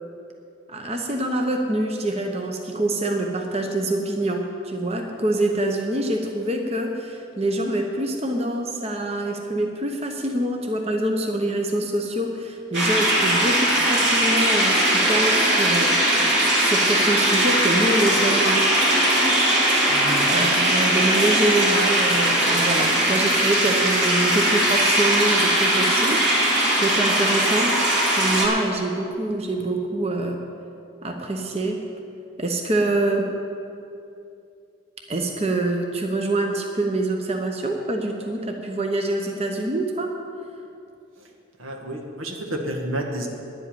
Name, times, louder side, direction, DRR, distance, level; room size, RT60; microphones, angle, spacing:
voice 1, 0.7-18.7 20.3-26.5 26.8-27.8 28.2-30.4 31.0-31.8 32.4-33.3 35.1-40.1, right 1 dB, 30° right, 3 dB, 0.8 m, -25 dB
sound 1, 12.7-28.5, right 1 dB, 60° right, 2.9 m, -20 dB
voice 2, 19.9-20.3 41.2-41.3 41.6-43.3, right 1 dB, 85° right, 2 dB, 1.7 m, -30 dB
11.0 x 8.1 x 9.0 m, 2.6 s
head